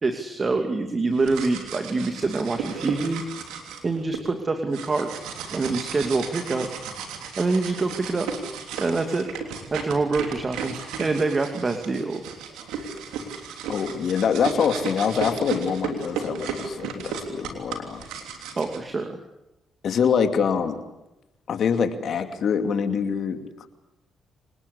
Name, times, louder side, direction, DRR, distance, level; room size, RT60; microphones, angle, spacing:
voice 1, 0.0-3.2 3.8-5.1 5.5-6.7 7.4-8.3 8.8-9.3 9.7-12.2 18.6-19.2, right 3 dB, 35° right, 6 dB, 2.7 m, -25 dB
sound 1, 1.1-4.2 4.7-18.8, right 6 dB, 85° right, 3.2 m, -35 dB
voice 2, 13.7-18.0 19.8-20.8 21.5-23.7, left 6 dB, 65° left, 7 dB, 2.7 m, -25 dB
26.0 x 20.0 x 8.6 m, 0.93 s
supercardioid pair, 60°, 0 cm